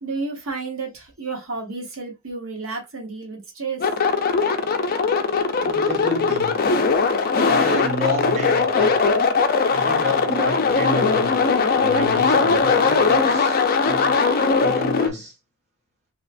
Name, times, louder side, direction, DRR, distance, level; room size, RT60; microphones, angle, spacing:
voice 1, 0.0-3.8, right 4 dB, 65° right, 1.1 m, -31 dB
sound 1, 3.8-15.1, left 4 dB, 45° left, 0.4 m, -20 dB
voice 2, 5.6-6.7 7.4-9.1 9.6-14.2 14.6-15.3, left 1 dB, 35° right, 1.0 m, -30 dB
3.1 x 2.8 x 2.5 m
head